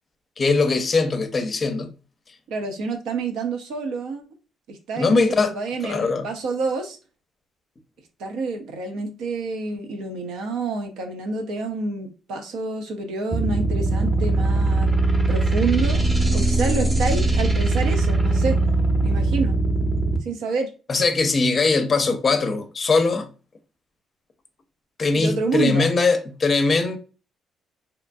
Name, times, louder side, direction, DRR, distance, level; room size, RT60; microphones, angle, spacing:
voice 1, 0.4-1.9 4.9-5.5 5.8-6.2 20.9-23.3 25.0-27.0, left 3 dB, 40° left, 0.5 m, -21 dB
voice 2, 2.5-4.2 4.7-7.0 8.2-14.9 15.3-16.0 16.3-18.6 19.0-19.6 20.2-20.7 25.1-25.9, right 3 dB, 90° right, 0.6 m, -28 dB
sound 1, 13.3-20.2, right 2 dB, 20° right, 0.6 m, -21 dB
2.8 x 2.5 x 2.3 m
cardioid pair, 90°, 0 cm